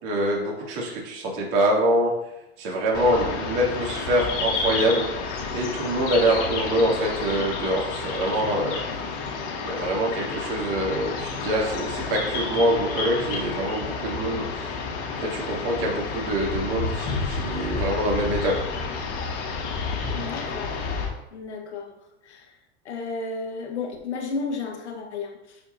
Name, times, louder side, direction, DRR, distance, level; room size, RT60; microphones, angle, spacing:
voice 1, 0.0-2.1 2.6-5.1 5.5-8.8 9.6-14.7 15.2-18.6, right 1 dB, 55° right, -3 dB, 2.9 m, -25 dB
sound 1, 2.9-21.1, left 4 dB, 45° left, 2.1 m, -30 dB
voice 2, 20.1-20.8 21.3-21.9 22.2-22.5 22.8-25.6, left 4 dB, 90° left, 2 dB, 1.6 m, -33 dB
11.5 x 4.7 x 2.8 m, 0.88 s
hypercardioid pair, 115°, 33 cm